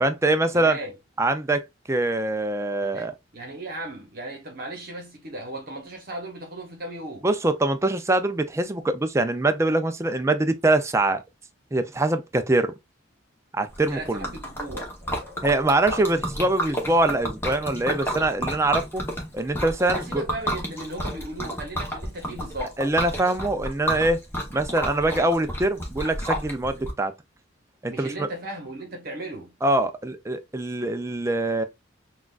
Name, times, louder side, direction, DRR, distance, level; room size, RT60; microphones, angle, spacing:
voice 1, 0.0-0.8 1.2-1.6 1.9-3.1 7.2-11.2 11.7-12.7 13.5-14.3 15.4-19.0 19.3-20.2 22.8-24.2 24.5-27.1 27.8-28.3 29.6-31.6, right 2 dB, 15° right, 0.4 m, -23 dB
voice 2, 0.5-0.9 2.8-7.3 13.9-14.9 19.9-22.8 27.9-29.5, right 1 dB, 50° right, 1.0 m, -36 dB
Liquid, 13.7-26.9, equal, 10° left, 0.9 m, -31 dB
6.0 x 2.4 x 2.4 m
head